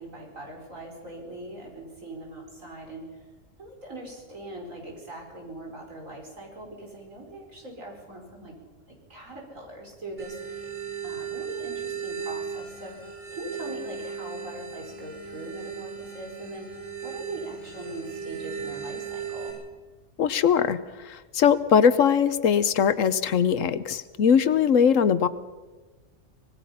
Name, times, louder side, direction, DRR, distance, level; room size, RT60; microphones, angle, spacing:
voice 1, 0.0-3.1 3.6-8.6 9.1-10.7 11.0-13.0 13.3-19.5, right 1 dB, 85° right, 1 dB, 5.3 m, -41 dB
sound 1, 10.2-19.5, right 7 dB, 45° right, 6.7 m, -36 dB
voice 2, 20.2-20.8 21.1-25.3, left 7 dB, 80° left, 14 dB, 1.3 m, -21 dB
25.5 x 19.5 x 5.8 m, 1.2 s
omnidirectional pair, 1.3 m